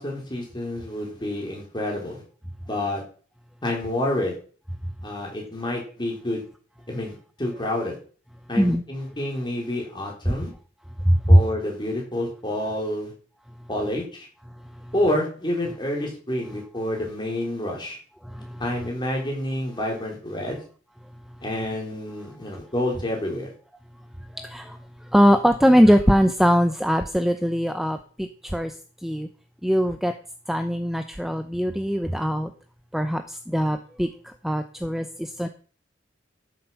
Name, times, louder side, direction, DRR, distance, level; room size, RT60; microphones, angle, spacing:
voice 1, 0.0-2.2 2.7-3.0 3.6-4.4 5.0-6.4 6.9-8.0 8.5-10.5 11.3-13.1 13.7-14.3 14.9-18.0 18.6-20.6 21.4-23.5, left 1 dB, 25° left, -1 dB, 4.0 m, -28 dB
voice 2, 11.1-11.4 18.3-18.5 24.4-24.8 25.1-28.7 29.0-29.3 29.6-30.1 30.5-32.5 32.9-35.5, equal, ahead, 7 dB, 0.7 m, -21 dB
12.5 x 7.6 x 5.9 m, 0.41 s
head